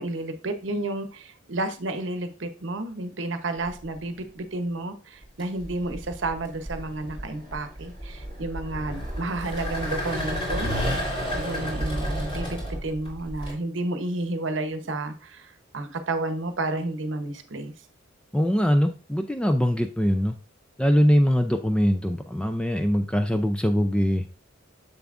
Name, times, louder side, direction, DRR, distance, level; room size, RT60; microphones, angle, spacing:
voice 1, 0.0-10.7 11.4-17.7, right 2 dB, 70° right, 9 dB, 0.8 m, -31 dB
sound 1, 3.6-4.1 5.2-13.5, equal, 30° left, 3.6 m, -31 dB
voice 2, 18.3-20.4 20.8-24.2, equal, 5° left, 7 dB, 0.3 m, -22 dB
7.0 x 6.9 x 2.5 m, 0.35 s
head